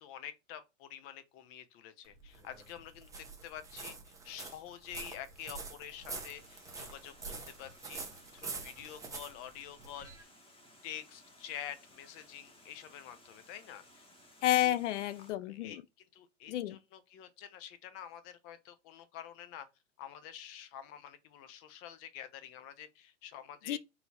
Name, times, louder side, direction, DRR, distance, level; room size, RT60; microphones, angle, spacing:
voice 1, 0.0-7.1 7.5-8.0 8.3-10.3 10.8-14.0 14.6-14.7 15.4-19.7 20.0-23.8, left 10 dB, 35° left, 0.8 m, -48 dB
sound 1, 2.0-10.2, right 4 dB, 10° right, 0.9 m, -46 dB
Water, 6.0-15.3, left 1 dB, 15° left, 1.4 m, -60 dB
voice 2, 14.4-15.8 16.5-16.8 23.7-23.8, left 13 dB, 70° left, 0.5 m, -30 dB
3.9 x 3.8 x 2.9 m
hypercardioid pair, 120°, 37 cm